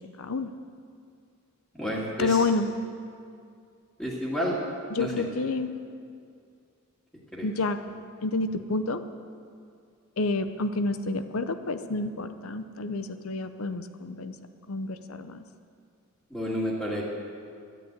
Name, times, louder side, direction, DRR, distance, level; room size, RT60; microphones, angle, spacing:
voice 1, 0.2-0.5 2.2-2.7 4.9-5.7 7.4-7.8 8.2-9.0 10.2-14.3 14.7-15.4, left 3 dB, 80° left, 10 dB, 0.8 m, -29 dB
voice 2, 1.8-2.4 4.0-4.7 5.0-5.1 7.3-7.5 16.3-17.0, equal, 5° left, -9 dB, 1.9 m, -30 dB
13.0 x 9.3 x 8.2 m, 2.3 s
head